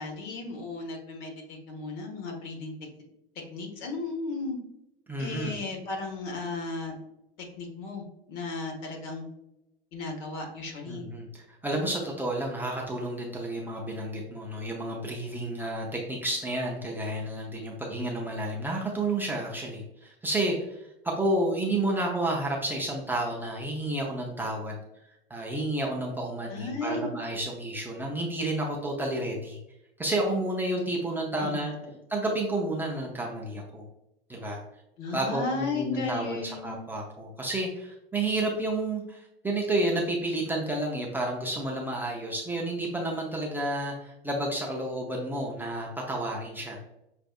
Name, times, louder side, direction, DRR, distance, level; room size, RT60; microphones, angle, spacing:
voice 1, 0.0-2.7 3.5-4.6 5.2-7.0 7.6-9.2 9.9-11.1 26.5-27.1 31.4-31.6 35.0-36.8, left 3 dB, 50° left, 1 dB, 1.3 m, -35 dB
voice 2, 5.1-5.5 10.9-24.8 25.3-29.6 30.0-31.7 32.1-33.9 34.3-34.6 35.1-39.2 39.4-46.8, right 1 dB, 5° right, -3 dB, 0.6 m, -30 dB
6.0 x 2.5 x 2.3 m, 0.88 s
figure-of-eight pair, 90°, 30 cm